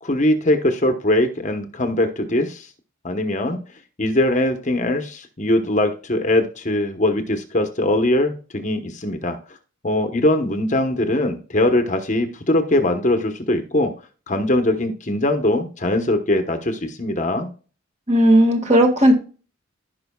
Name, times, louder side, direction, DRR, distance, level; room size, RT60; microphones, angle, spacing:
voice 1, 0.0-2.7 3.0-3.6 4.0-9.4 9.8-13.9 14.3-17.5, left 1 dB, 35° left, 7 dB, 1.0 m, -21 dB
voice 2, 18.1-19.1, right 1 dB, 35° right, 3 dB, 1.8 m, -14 dB
16.5 x 5.5 x 2.3 m, 0.37 s
head